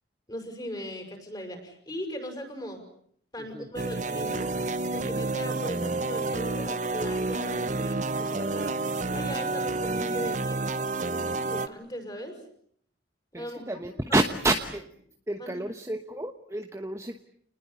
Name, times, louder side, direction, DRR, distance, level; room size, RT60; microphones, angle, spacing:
voice 1, 0.3-2.8 3.3-8.8 9.1-10.6 11.0-12.4 13.3-13.6 14.1-14.2 15.4-15.5, equal, 20° left, 5 dB, 6.3 m, -38 dB
sound 1, 3.8-11.7, right 3 dB, 40° right, 1.0 m, -29 dB
voice 2, 13.3-14.9 15.3-17.2, right 2 dB, 15° right, 6 dB, 1.1 m, -29 dB
29.5 x 20.5 x 8.3 m, 0.65 s
head